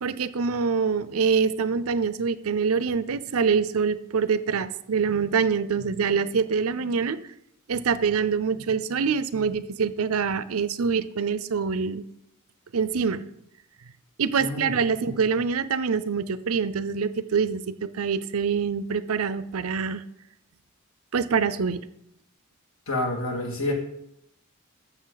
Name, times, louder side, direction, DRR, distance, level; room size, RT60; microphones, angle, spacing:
voice 1, 0.0-7.2 7.7-12.0 12.7-13.2 14.2-20.0 21.1-21.9, right 5 dB, 75° right, 14 dB, 0.6 m, -25 dB
voice 2, 14.4-14.7 22.9-23.7, left 2 dB, 70° left, 1 dB, 2.3 m, -28 dB
14.0 x 6.6 x 4.0 m, 0.79 s
head